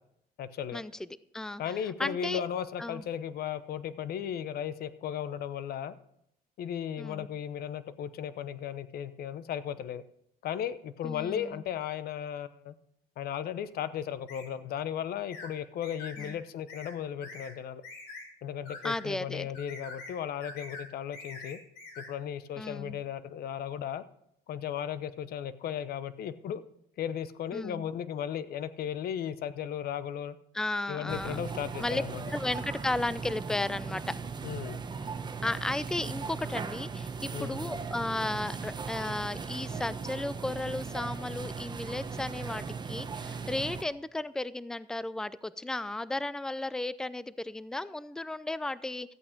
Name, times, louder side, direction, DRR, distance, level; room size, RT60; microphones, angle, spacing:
voice 1, 0.4-0.8 1.6-6.0 6.6-10.0 10.4-12.7 13.2-17.8 18.4-21.6 22.0-24.0 24.5-26.6 27.0-30.3 30.9-32.2 34.4-34.8 37.3-37.6, left 9 dB, 65° left, 14 dB, 0.9 m, -36 dB
voice 2, 2.0-2.4 2.8-3.0 7.0-7.3 11.0-11.6 16.2-16.4 18.8-19.5 22.6-23.0 27.5-27.8 30.5-31.4 31.8-32.0 32.3-34.1 35.4-49.1, left 2 dB, 5° left, 17 dB, 0.5 m, -34 dB
sound 1, 14.3-14.5 15.3-15.5 15.8-16.3 16.7-16.9 17.2-17.5 17.8-18.2 18.6-19.0 19.5-20.1 20.4-20.9 21.1-22.1, left 3 dB, 85° left, 4.2 m, -44 dB
sound 2, 31.1-43.8, right 5 dB, 25° right, 1.1 m, -38 dB
13.5 x 8.6 x 5.1 m, 0.74 s
cardioid pair, 110°, 17 cm